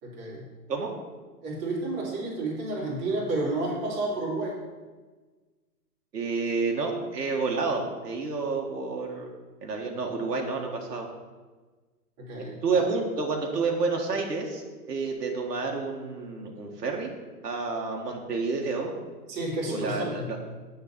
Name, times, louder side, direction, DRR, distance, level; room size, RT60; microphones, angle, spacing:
voice 1, 0.0-0.5 1.4-4.6 12.2-12.9 19.3-20.3, right 2 dB, 30° right, -4 dB, 2.9 m, -31 dB
voice 2, 6.1-9.3 9.6-11.1 12.4-17.1 17.4-18.9 19.6-20.4, right 4 dB, 80° right, 0 dB, 1.6 m, -29 dB
9.4 x 4.1 x 5.8 m, 1.3 s
hypercardioid pair, 140°, 48 cm